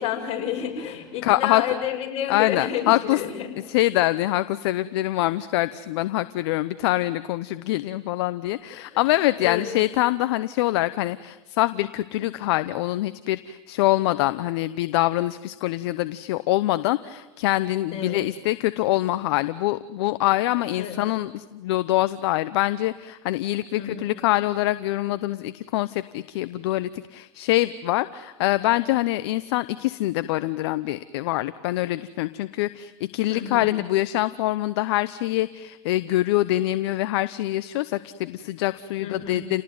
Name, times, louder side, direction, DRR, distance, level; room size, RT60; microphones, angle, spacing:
voice 1, 0.0-3.5 9.4-9.7 17.9-18.2 20.7-21.0 23.7-24.1 33.3-33.7 39.0-39.4, left 9 dB, 45° left, 1 dB, 6.6 m, -30 dB
voice 2, 1.2-1.6 2.3-3.2 3.7-39.6, left 16 dB, 70° left, 14 dB, 0.8 m, -24 dB
29.5 x 19.0 x 9.5 m, 1.2 s
hypercardioid pair, 105°, 15 cm